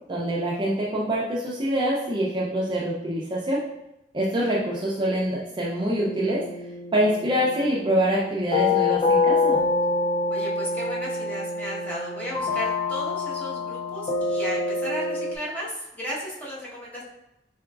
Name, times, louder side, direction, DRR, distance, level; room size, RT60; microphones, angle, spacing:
voice 1, 0.1-3.6 4.1-6.5 6.9-9.6, right 1 dB, 25° right, -5 dB, 0.5 m, -25 dB
sound 1, 6.0-15.4, left 3 dB, 35° left, 0.3 m, -26 dB
voice 2, 10.3-17.0, equal, 10° left, -7 dB, 1.0 m, -34 dB
3.7 x 3.5 x 2.3 m, 0.88 s
head